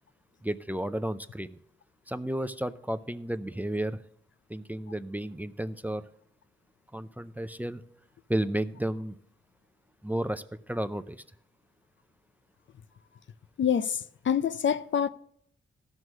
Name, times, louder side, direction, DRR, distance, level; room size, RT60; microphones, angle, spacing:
voice 1, 0.4-1.6 2.1-4.0 4.5-6.0 6.9-7.8 8.3-9.2 10.0-11.2, right 1 dB, 10° right, 0.5 m, -32 dB
voice 2, 13.6-15.1, left 8 dB, 65° left, 0.5 m, -26 dB
12.5 x 6.3 x 6.3 m
cardioid pair, 80°, 21 cm